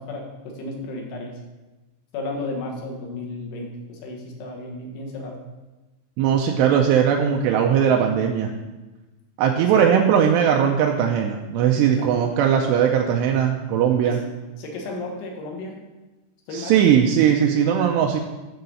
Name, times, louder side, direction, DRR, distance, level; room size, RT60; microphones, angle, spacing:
voice 1, 0.0-1.4 2.1-5.4 6.3-6.7 9.7-9.8 12.0-12.3 14.0-14.2 14.6-15.8 16.5-17.1, left 2 dB, 70° left, -1 dB, 2.0 m, -34 dB
voice 2, 6.2-8.5 9.4-14.2 16.5-18.2, right 8 dB, 90° right, 1 dB, 2.4 m, -19 dB
9.4 x 3.9 x 6.9 m, 1.1 s
omnidirectional pair, 5.5 m